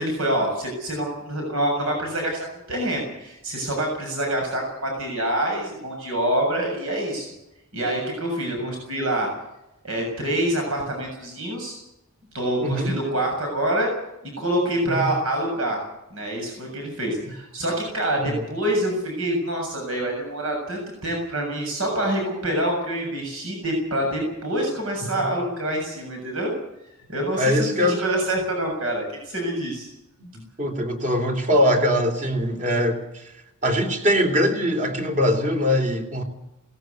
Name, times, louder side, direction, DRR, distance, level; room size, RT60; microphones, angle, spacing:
voice 1, 0.0-7.3 7.7-9.3 9.8-11.8 12.3-13.9 14.2-15.8 16.1-26.5 27.1-29.9, right 1 dB, 70° right, 1 dB, 7.0 m, -26 dB
voice 2, 12.6-12.9 14.8-15.1 18.2-18.4 27.4-28.0 30.3-33.3 33.6-36.2, equal, 35° right, 5 dB, 3.6 m, -22 dB
18.5 x 16.5 x 9.4 m, 0.89 s
head